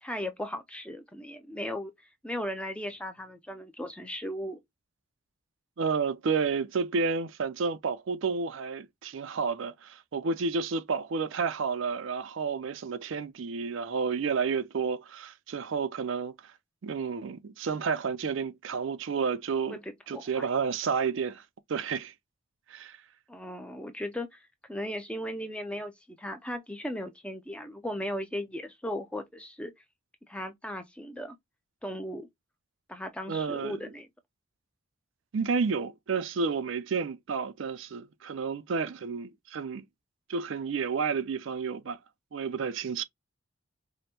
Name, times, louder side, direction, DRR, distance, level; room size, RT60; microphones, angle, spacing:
voice 1, 0.0-1.9 2.2-4.6 19.7-20.5 23.3-29.7 30.3-31.4 31.8-32.3 32.9-34.1, left 1 dB, 5° left, 0.4 m, -37 dB
voice 2, 5.8-16.5 16.8-19.8 20.1-21.4 21.7-22.1 22.7-23.0 33.3-33.9 35.3-39.8 40.3-42.0 42.3-43.0, right 5 dB, 60° right, 0.4 m, -31 dB
5.0 x 2.1 x 2.9 m
head